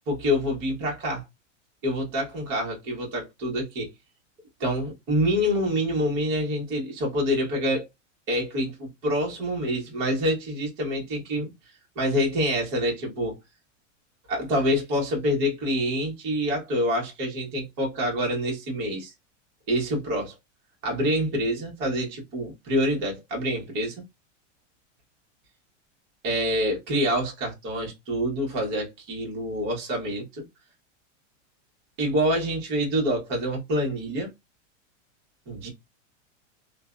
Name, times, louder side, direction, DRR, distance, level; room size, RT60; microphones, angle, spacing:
voice 1, 0.1-1.2 1.8-3.9 4.6-7.9 8.3-11.5 11.9-13.4 14.3-19.1 19.7-20.4 20.8-24.0 26.2-30.4 32.0-34.3 35.5-35.7, equal, 30° right, 1.1 m, -26 dB
2.5 x 2.2 x 2.4 m
supercardioid pair, 165°, 37 cm